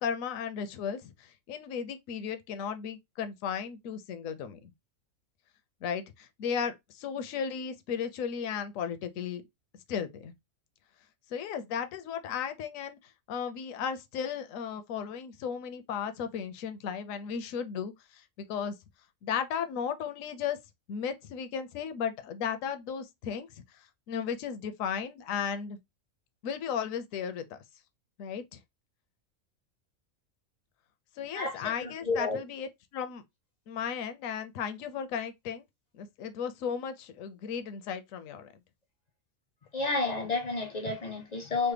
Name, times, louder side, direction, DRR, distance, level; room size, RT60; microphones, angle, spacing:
voice 1, 0.0-4.7 5.8-9.4 9.9-10.3 11.3-18.8 19.2-20.6 20.9-25.8 26.4-27.6 28.2-28.6 31.2-33.2 33.7-35.6 35.9-38.5, left 7 dB, 80° left, 1.0 m, -35 dB
voice 2, 31.3-32.4 39.7-41.7, left 3 dB, 50° left, 0.5 m, -31 dB
3.3 x 2.0 x 3.2 m
omnidirectional pair, 1.4 m